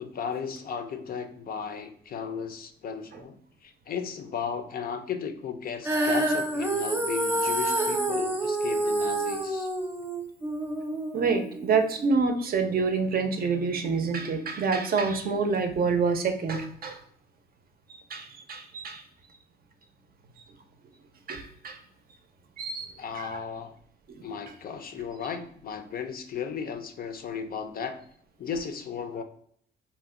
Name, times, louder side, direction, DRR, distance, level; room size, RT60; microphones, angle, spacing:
voice 1, 0.0-3.4 3.6-9.7 23.0-23.8 24.2-28.0 28.4-29.2, left 6 dB, 50° left, 7 dB, 0.4 m, -35 dB
Female singing, 5.8-12.1, right 1 dB, 10° right, 0.7 m, -28 dB
voice 2, 11.1-17.0 18.1-19.0 21.3-21.8 22.6-23.4, right 4 dB, 50° right, 6 dB, 0.5 m, -27 dB
2.8 x 2.1 x 3.5 m, 0.63 s
cardioid pair, 90°, 20 cm